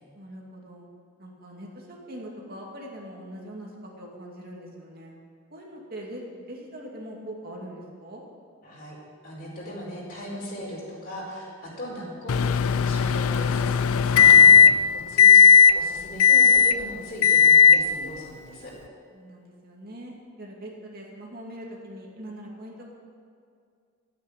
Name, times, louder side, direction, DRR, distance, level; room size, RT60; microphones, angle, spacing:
voice 1, 0.1-0.9 1.2-3.7 4.0-5.1 5.5-8.2 14.8-14.9 19.1-22.8, right 1 dB, 45° right, -2 dB, 2.4 m, -41 dB
voice 2, 8.6-9.0 9.2-15.3 15.6-18.7, equal, 45° left, -4 dB, 4.7 m, -38 dB
Microwave oven, 12.3-14.9 15.2-15.7 16.2-16.8 17.2-17.8, left 7 dB, 75° left, 0.4 m, -15 dB
14.0 x 9.2 x 8.8 m, 2.3 s
head